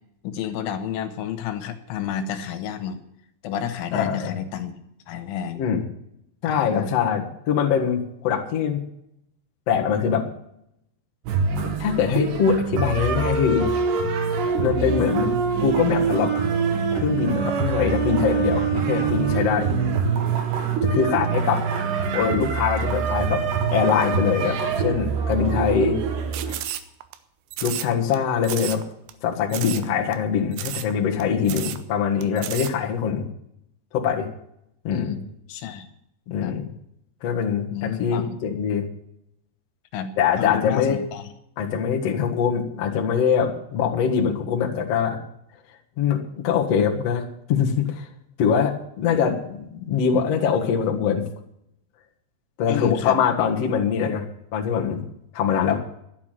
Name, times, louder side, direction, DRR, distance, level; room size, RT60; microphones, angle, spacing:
voice 1, 0.2-3.0 3.4-4.7 5.1-5.6 6.5-6.9 34.9-35.9 36.4-36.6 37.7-38.3 39.9-41.3 52.7-53.2, left 9 dB, 90° left, 7 dB, 3.7 m, -30 dB
voice 2, 3.9-4.3 5.6-5.8 6.4-8.8 9.7-10.3 11.8-13.8 14.6-15.3 15.6-16.3 16.9-19.7 20.8-21.6 22.1-23.4 23.7-26.0 26.5-26.6 27.6-28.8 29.2-33.3 33.9-34.3 34.8-35.2 36.3-36.7 37.2-38.9 40.2-41.1 41.6-45.2 46.0-48.1 48.4-51.2 52.6-54.2 54.5-55.0 55.3-55.8, left 7 dB, 60° left, 0 dB, 1.6 m, -23 dB
sound 1, 11.3-26.5, right 5 dB, 70° right, 3.5 m, -24 dB
sound 2, 26.3-27.2 27.5-28.2 28.4-28.8 29.1-29.2 29.5-29.9 30.1-30.2 30.5-30.9 31.2-31.3 31.5-31.8 32.2-32.7, right 13 dB, 90° right, 3.3 m, -32 dB
12.0 x 8.3 x 9.2 m, 0.77 s
omnidirectional pair, 5.4 m